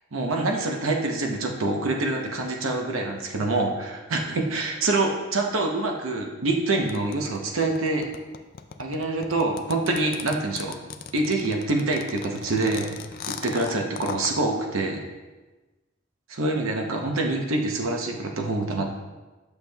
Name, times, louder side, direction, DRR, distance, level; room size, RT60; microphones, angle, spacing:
voice 1, 0.1-8.1 8.8-10.7 11.1-12.9 13.3-15.0 16.3-19.0, right 2 dB, 90° right, 2 dB, 0.8 m, -26 dB
sound 1, 6.9-14.3, left 7 dB, 50° left, 0.4 m, -37 dB
8.0 x 6.7 x 2.3 m, 1.2 s
head